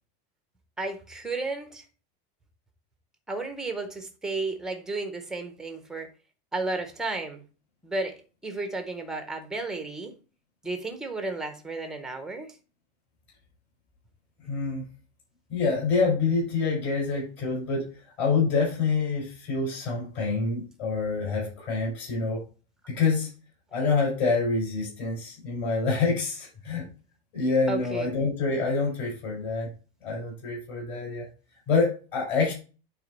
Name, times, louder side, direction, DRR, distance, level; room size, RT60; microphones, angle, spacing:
voice 1, 0.8-1.8 3.3-6.1 6.5-7.4 7.8-10.1 10.6-12.6 27.7-28.1, right 3 dB, ahead, 0.6 m, -33 dB
voice 2, 14.5-14.8 15.5-17.8 18.2-22.4 22.9-23.3 23.7-26.8 27.3-29.7 30.0-31.2 31.7-32.5, left 4 dB, 35° left, 4.5 m, -26 dB
9.0 x 3.8 x 4.0 m
supercardioid pair, 175°, 32 cm